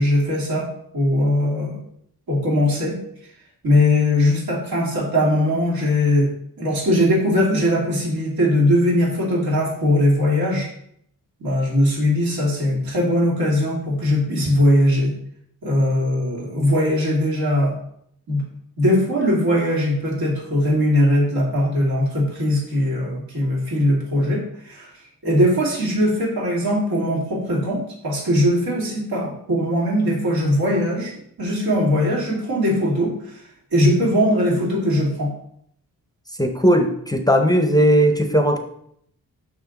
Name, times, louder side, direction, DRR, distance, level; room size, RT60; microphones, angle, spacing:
voice 1, 0.0-1.8 2.3-3.0 3.6-6.3 6.6-10.7 11.4-15.1 15.6-17.8 18.3-18.4 18.8-24.9 25.2-33.4 33.7-35.3, left 1 dB, 90° right, -3 dB, 2.6 m, -20 dB
voice 2, 36.4-38.6, equal, 10° left, 5 dB, 0.5 m, -17 dB
6.3 x 5.8 x 3.8 m, 0.69 s
wide cardioid pair, 175°, 35 cm